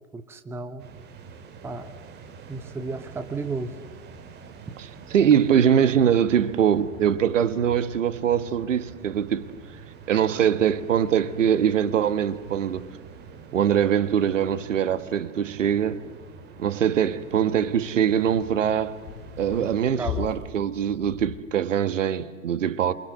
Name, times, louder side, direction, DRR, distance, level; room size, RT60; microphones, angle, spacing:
voice 1, 0.1-0.9 1.6-1.9 2.5-3.8 19.6-19.7 20.0-20.3, right 3 dB, 5° right, 1.0 m, -33 dB
sound 1, 0.8-19.9, right 5 dB, 25° right, 2.6 m, -45 dB
voice 2, 5.1-9.5 10.1-12.9 13.5-16.0 16.6-18.9 19.4-22.9, right 9 dB, 60° right, 1.7 m, -22 dB
sound 2, 13.3-21.5, left 12 dB, 30° left, 1.7 m, -40 dB
28.0 x 24.5 x 7.8 m
figure-of-eight pair, 110°, 42 cm